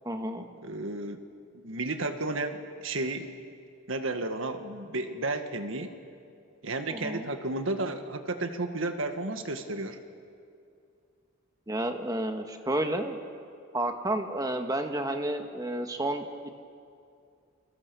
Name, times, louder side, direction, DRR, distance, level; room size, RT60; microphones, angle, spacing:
voice 1, 0.0-0.5 6.9-7.3 11.7-13.2 13.7-16.6, right 1 dB, 20° right, 5 dB, 1.6 m, -31 dB
voice 2, 0.6-1.2 1.5-3.3 3.9-6.0 6.6-10.0, right 2 dB, 75° right, 7 dB, 1.7 m, -32 dB
29.5 x 24.0 x 7.0 m, 2.4 s
head